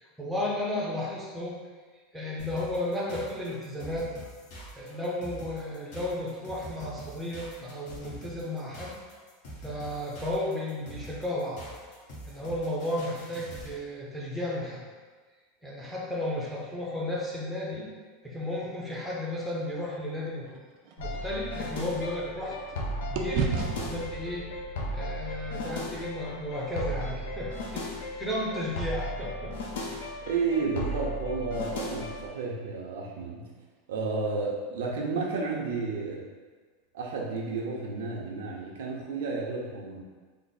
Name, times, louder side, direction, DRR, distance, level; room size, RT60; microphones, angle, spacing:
voice 1, 0.0-1.6 2.1-4.1 4.7-9.0 9.6-11.7 12.2-14.8 15.6-17.9 18.2-20.6 21.0-22.6 23.1-23.5 23.8-24.5 24.9-29.9, left 1 dB, ahead, -5 dB, 0.6 m, -33 dB
sound 1, 2.4-13.8, equal, 60° left, 1.3 m, -45 dB
sound 2, 20.5-22.8 23.1-27.4, right 5 dB, 45° right, 0.4 m, -36 dB
sound 3, 21.0-32.3, left 1 dB, 85° left, 0.6 m, -36 dB
voice 2, 30.3-33.5 33.9-36.2 36.9-40.0, right 4 dB, 90° right, -1 dB, 0.7 m, -32 dB
3.5 x 2.0 x 4.1 m, 1.4 s
supercardioid pair, 160°, 0 cm